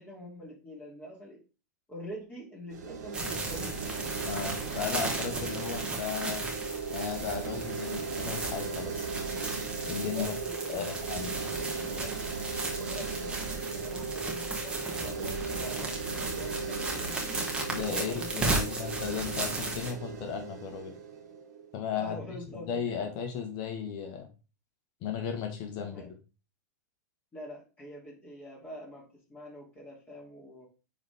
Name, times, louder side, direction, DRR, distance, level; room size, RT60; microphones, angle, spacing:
voice 1, 0.0-1.4 1.9-3.8 5.3-5.5 10.1-11.0 11.9-12.2 12.8-16.0 16.3-17.5 17.7-18.7 21.9-23.0 25.7-26.1 27.3-30.7, left 1 dB, 20° left, -4 dB, 3.2 m, -45 dB
sound 1, 2.7-21.8, right 5 dB, 75° right, 2.8 m, -37 dB
sound 2, 3.1-19.9, right 2 dB, 10° right, 2.1 m, -35 dB
voice 2, 4.2-6.4 6.9-9.1 9.8-10.3 10.7-11.3 17.7-20.9 21.7-22.4 22.6-24.3 25.0-26.1, left 7 dB, 50° left, 5 dB, 1.7 m, -35 dB
9.8 x 4.2 x 3.6 m, 0.32 s
hypercardioid pair, 105°, 10 cm